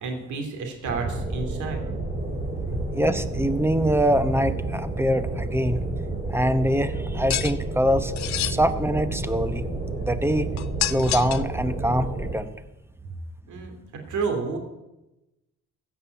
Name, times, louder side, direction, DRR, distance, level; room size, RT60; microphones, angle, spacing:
voice 1, 0.0-1.8 13.5-13.7 14.1-14.6, right 4 dB, 75° right, 3 dB, 2.9 m, -30 dB
sound 1, 0.9-12.3, right 2 dB, 25° right, 5.2 m, -30 dB
voice 2, 2.9-5.8 6.3-8.1 8.5-9.6 10.1-10.5 10.9-12.5, equal, 10° right, 11 dB, 0.9 m, -24 dB
sound 2, 7.3-7.5 8.2-8.6 10.6-11.5, left 13 dB, 70° left, 0.6 m, -27 dB
15.0 x 5.8 x 8.1 m, 0.99 s
cardioid pair, 90°, 30 cm